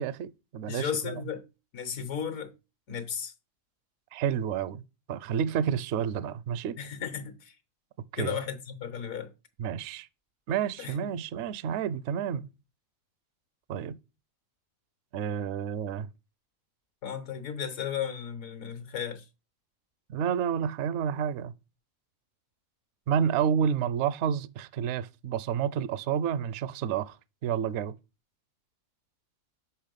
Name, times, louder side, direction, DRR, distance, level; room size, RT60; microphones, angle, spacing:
voice 1, 0.0-1.2 4.1-4.8 5.1-6.8 8.1-8.3 9.6-10.1 10.5-12.5 13.7-14.0 15.1-16.1 20.1-21.5 23.1-27.2 27.4-28.0, right 8 dB, 65° right, 0.8 m, -30 dB
voice 2, 0.7-1.4 1.7-2.5 2.9-3.3 6.8-7.6 8.1-9.3 10.8-11.1 17.0-19.3, left 8 dB, 75° left, 1.4 m, -34 dB
5.9 x 5.6 x 5.2 m
omnidirectional pair, 1.4 m